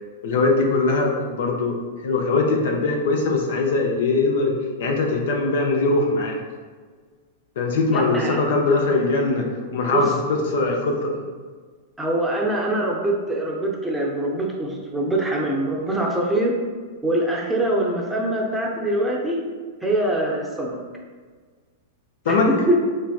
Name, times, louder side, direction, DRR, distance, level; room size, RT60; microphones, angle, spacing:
voice 1, 0.2-1.8 2.0-4.5 4.8-6.4 7.6-11.2 22.3-22.5, left 3 dB, 65° left, 1 dB, 0.6 m, -21 dB
voice 2, 7.9-8.4 9.9-10.0 12.0-16.5 17.0-19.4 19.8-20.8 22.3-22.8, right 1 dB, 10° right, -2 dB, 0.6 m, -23 dB
3.3 x 3.2 x 2.4 m, 1.5 s
hypercardioid pair, 105°, 0 cm